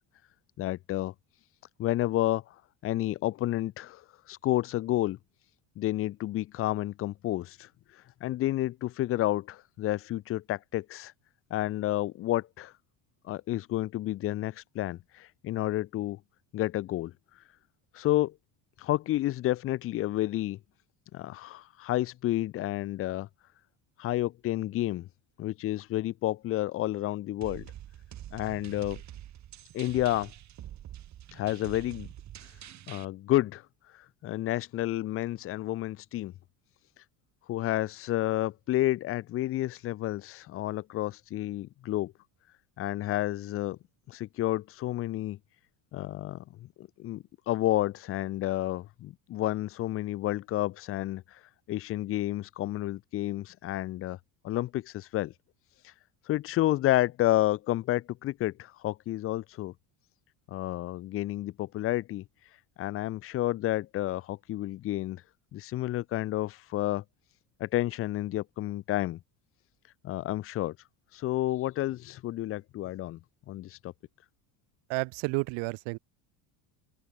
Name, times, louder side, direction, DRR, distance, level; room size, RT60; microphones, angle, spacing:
voice 1, 0.6-1.1 1.8-2.4 2.8-4.0 4.3-5.2 5.8-7.7 8.2-11.1 11.5-12.7 13.3-16.2 16.5-17.1 17.9-18.3 18.8-20.6 21.1-23.3 24.0-25.1 25.4-27.7 28.3-29.0 29.7-30.3 31.3-32.1 32.9-33.6 34.2-36.3 37.5-42.1 42.8-43.8 44.1-45.4 45.9-51.2 51.7-54.2 54.4-55.3 55.8-55.9 56.3-59.7 60.5-62.2 62.8-65.2 65.5-67.0 67.6-69.2 70.0-70.8 71.1-73.2 73.5-73.9, left 15 dB, 30° left, 0.5 m, -30 dB
sound 1, 27.4-33.0, right 12 dB, 40° right, 3.0 m, -45 dB
voice 2, 74.9-76.0, right 30 dB, 75° right, 2.0 m, -31 dB
open air
cardioid pair, 160°, 44 cm